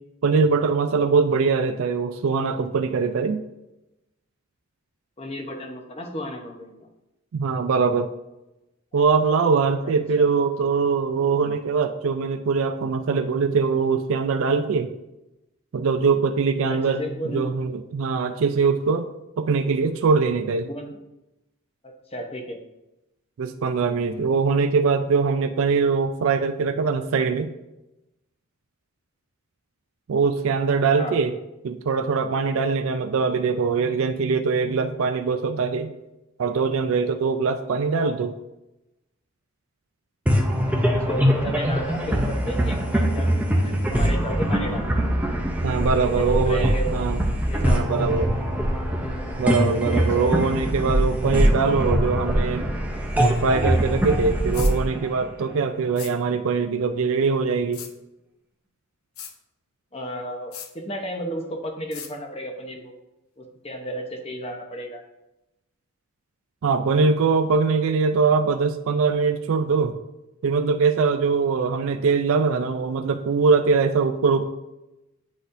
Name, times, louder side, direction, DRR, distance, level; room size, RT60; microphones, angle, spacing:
voice 1, 0.2-3.4 7.3-8.1 8.9-14.9 15.7-19.1 19.4-20.7 23.4-27.5 30.1-31.3 31.6-35.9 36.4-38.4 45.6-47.2 47.6-48.3 49.4-52.7 53.2-57.8 66.6-69.9 70.4-74.5, right 5 dB, 70° right, 7 dB, 0.4 m, -22 dB
voice 2, 5.2-6.7 8.9-9.0 9.8-10.2 16.7-17.4 20.6-20.9 21.8-22.6 31.0-31.2 40.8-45.0 46.0-46.9 47.5-48.0 49.9-50.3 59.9-62.9 63.4-65.0, equal, 25° left, 2 dB, 0.8 m, -33 dB
sound 1, 40.3-55.9, equal, 5° right, 0.6 m, -23 dB
sound 2, 54.5-54.7 56.0-56.1 57.7-57.9 59.2-59.3 60.5-60.7 61.9-62.1, left 8 dB, 75° left, 0.7 m, -37 dB
9.7 x 4.1 x 2.6 m, 0.95 s
head